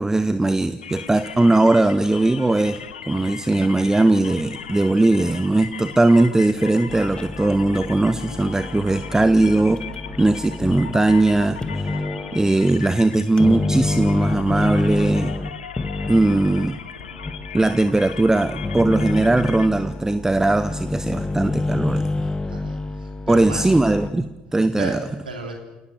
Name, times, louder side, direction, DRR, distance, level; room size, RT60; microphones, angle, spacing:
voice 1, 0.0-2.8 3.1-9.8 10.2-11.9 12.3-15.3 16.1-16.8 17.5-22.3 23.3-25.0, right 2 dB, 10° right, 13 dB, 0.9 m, -19 dB
sound 1, 0.8-19.7, left 7 dB, 80° left, 1.1 m, -38 dB
sound 2, 6.9-12.6 13.4-24.1, left 2 dB, 20° left, 1.7 m, -28 dB
voice 2, 22.4-23.6 24.8-25.5, right 3 dB, 80° right, 3 dB, 3.4 m, -34 dB
29.0 x 18.5 x 6.6 m, 1.1 s
figure-of-eight pair, 55°, 5 cm